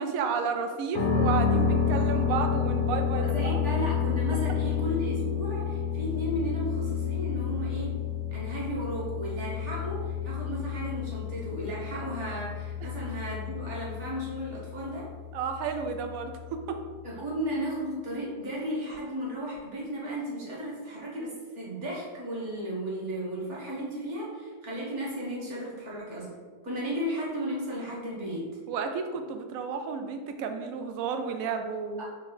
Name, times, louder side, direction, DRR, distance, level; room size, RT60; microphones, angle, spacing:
voice 1, 0.0-3.6 15.3-16.8 26.7-26.8 28.7-32.0, right 5 dB, 70° right, 6 dB, 0.9 m, -32 dB
sound 1, 0.9-16.8, left 7 dB, 75° left, 1.2 m, -30 dB
voice 2, 3.1-8.0 8.3-15.1 17.0-26.3 26.6-28.5 32.0-32.1, equal, 50° right, -5 dB, 1.5 m, -34 dB
4.3 x 3.1 x 3.8 m, 1.5 s
omnidirectional pair, 1.7 m